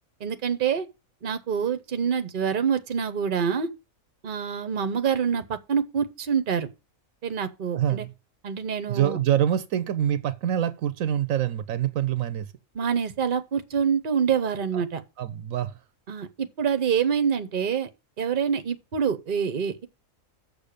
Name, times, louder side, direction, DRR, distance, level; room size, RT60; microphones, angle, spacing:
voice 1, 0.2-0.9 1.2-3.7 4.2-6.7 7.2-8.1 8.4-9.2 12.7-15.0 16.1-17.9 18.2-19.9, right 7 dB, 45° right, 1.0 m, -26 dB
voice 2, 7.7-8.1 8.9-12.5 14.7-14.8 15.2-15.8, right 10 dB, 80° right, 1.1 m, -25 dB
6.8 x 6.6 x 6.6 m
omnidirectional pair, 1.4 m